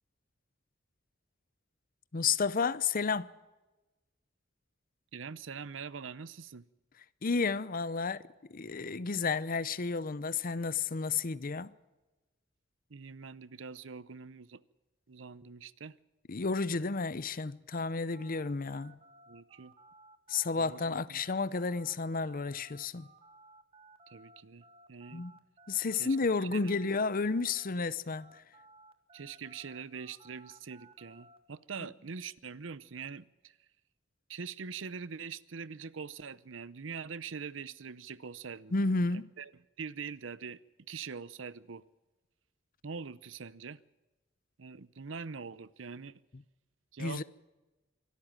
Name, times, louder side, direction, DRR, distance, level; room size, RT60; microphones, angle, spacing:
voice 1, 2.1-3.3 7.2-8.2 8.5-11.7 16.3-19.0 20.3-23.1 25.1-25.3 25.7-28.4 38.7-39.3 47.0-47.2, left 4 dB, 45° left, 0.7 m, -31 dB
voice 2, 5.1-6.6 12.9-14.6 15.1-16.0 19.3-19.7 20.5-21.2 24.1-25.2 26.0-26.7 29.1-33.6 34.3-38.8 39.1-39.5 39.8-40.6 40.9-41.8 42.8-43.8 44.6-46.2 46.9-47.2, right 5 dB, 75° right, 0.7 m, -43 dB
sound 1, 17.7-27.9 28.1-31.4, right 2 dB, 30° right, 2.0 m, -58 dB
24.5 x 13.0 x 8.9 m
head